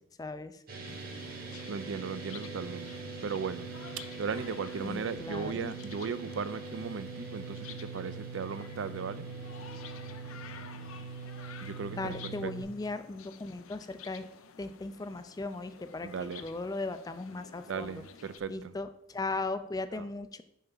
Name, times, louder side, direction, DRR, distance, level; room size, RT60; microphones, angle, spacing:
voice 1, 0.2-0.5 4.8-5.7 11.9-14.3 14.6-18.0 18.5-20.4, left 3 dB, 20° left, 0.3 m, -37 dB
sound 1, 0.7-12.6, right 4 dB, 45° right, 1.2 m, -42 dB
sound 2, 0.8-18.4, left 7 dB, 90° left, 0.5 m, -52 dB
voice 2, 1.7-2.9 3.2-3.7 4.0-9.3 11.6-12.5 16.0-16.5 17.7-18.7 19.9-20.0, right 5 dB, 65° right, 0.4 m, -37 dB
5.6 x 4.8 x 5.5 m
head